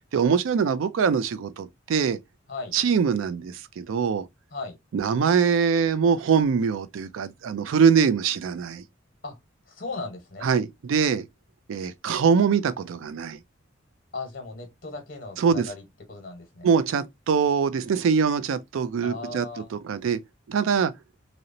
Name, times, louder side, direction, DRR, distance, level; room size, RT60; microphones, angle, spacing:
voice 1, 0.1-2.2 2.7-4.2 4.9-8.8 10.4-11.2 11.7-13.4 15.4-15.7 16.6-19.5 19.7-20.2 20.5-20.9, right 6 dB, 80° right, 0.3 m, -23 dB
voice 2, 9.7-10.5 14.1-16.7 19.0-19.7, left 3 dB, 45° left, 0.9 m, -37 dB
2.8 x 2.0 x 2.5 m
head